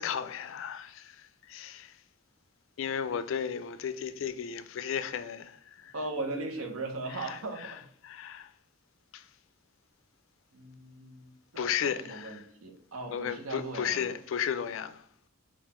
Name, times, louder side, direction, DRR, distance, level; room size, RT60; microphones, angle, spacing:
voice 1, 0.0-2.0 2.8-5.9 7.3-8.5 9.1-9.2 11.6-12.4 13.1-15.0, left 8 dB, 65° left, 0.3 m, -34 dB
voice 2, 5.9-7.6 10.5-14.1, right 2 dB, 85° right, 0.8 m, -38 dB
4.1 x 2.4 x 4.2 m
head